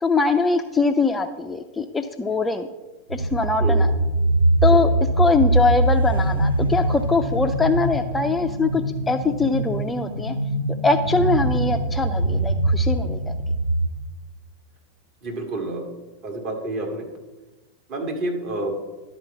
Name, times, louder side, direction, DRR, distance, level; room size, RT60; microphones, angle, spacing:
voice 1, 0.0-2.7 3.1-3.9 4.6-4.9 5.2-10.4 10.8-13.3, left 3 dB, 10° left, 7 dB, 0.4 m, -22 dB
sound 1, 3.1-13.9, right 1 dB, 85° right, 0.6 m, -22 dB
voice 2, 15.2-15.9 16.2-17.1 17.9-18.7, right 2 dB, 40° right, 1 dB, 1.9 m, -28 dB
11.0 x 4.3 x 6.0 m, 1.2 s
figure-of-eight pair, 90°, 0 cm